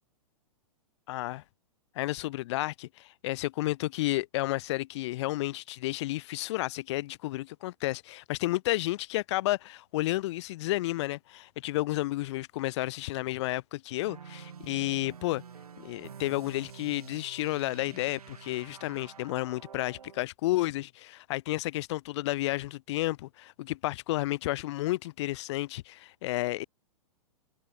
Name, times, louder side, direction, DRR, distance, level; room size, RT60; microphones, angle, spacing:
voice 1, 1.1-1.4 2.0-15.4 15.8-26.6, left 18 dB, 50° left, 0.4 m, -31 dB
sound 1, 14.0-20.2, right 7 dB, 85° right, 1.3 m, -48 dB
hypercardioid pair, 115°, 19 cm